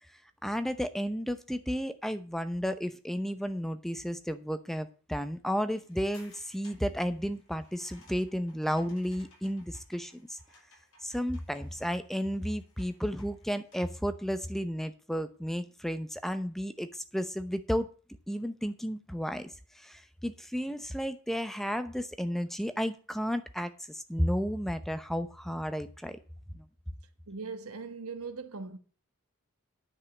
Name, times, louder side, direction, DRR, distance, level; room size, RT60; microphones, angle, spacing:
voice 1, 0.4-10.4 11.0-17.9 18.3-26.2 26.5-26.6, equal, ahead, 0.7 m, -33 dB
sound 1, 5.9-14.0, left 2 dB, 75° left, 5.6 m, -61 dB
voice 2, 27.3-28.8, right 4 dB, 90° right, 1.4 m, -40 dB
10.0 x 5.6 x 8.3 m
head